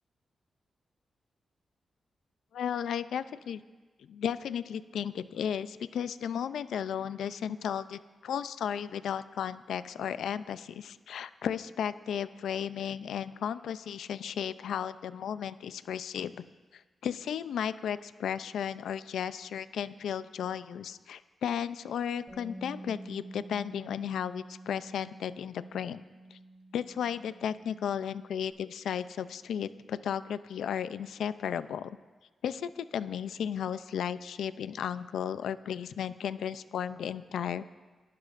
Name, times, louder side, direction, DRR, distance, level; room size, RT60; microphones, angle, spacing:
voice 1, 2.5-3.6 4.1-16.4 17.0-26.0 26.3-26.4 26.7-32.0 32.4-37.7, left 8 dB, 90° left, 14 dB, 0.4 m, -34 dB
Bass guitar, 22.3-28.5, right 1 dB, 25° left, 2.9 m, -49 dB
29.5 x 11.5 x 2.5 m, 1.3 s
cardioid pair, 70°, 0 cm